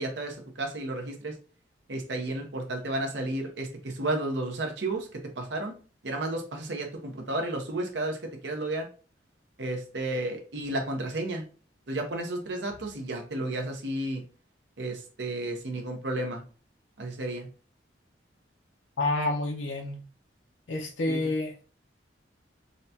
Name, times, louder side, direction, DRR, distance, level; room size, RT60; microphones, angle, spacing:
voice 1, 0.0-1.3 1.9-5.1 5.4-5.7 6.0-8.2 8.4-8.9 9.6-11.4 11.9-14.2 14.8-16.4 17.0-17.5 21.1-21.3, right 2 dB, 65° right, 3 dB, 0.8 m, -32 dB
voice 2, 19.0-20.0 20.7-21.6, left 2 dB, 75° left, 1 dB, 0.6 m, -29 dB
4.0 x 2.2 x 2.6 m, 0.37 s
head